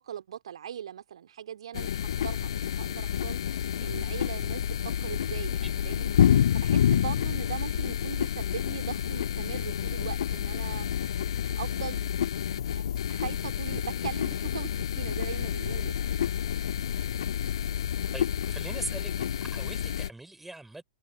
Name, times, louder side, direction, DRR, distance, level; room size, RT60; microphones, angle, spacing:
voice 1, 0.0-10.9 11.2-12.1 12.7-12.8 13.1-16.0, right 9 dB, 60° right, 2.5 m, -40 dB
sound 1, 1.7-20.1, left 9 dB, 60° left, 2.2 m, -29 dB
voice 2, 18.1-19.1 19.4-20.8, right 2 dB, 5° right, 4.8 m, -41 dB
figure-of-eight pair, 105°, 3 cm